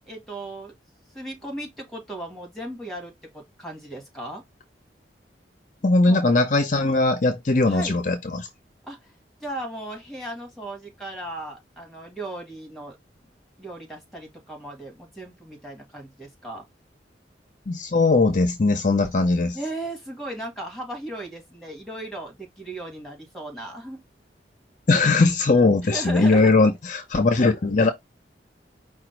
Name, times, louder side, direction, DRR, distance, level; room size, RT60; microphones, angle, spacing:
voice 1, 0.1-0.7 1.1-4.4 6.1-6.2 7.7-8.0 8.9-9.1 9.4-13.0 13.6-16.7 19.5-24.0 25.8-26.5, right 1 dB, ahead, 2.1 m, -36 dB
voice 2, 5.8-8.5 17.7-19.6 24.9-27.9, left 3 dB, 45° left, 0.6 m, -20 dB
5.0 x 2.4 x 4.4 m
head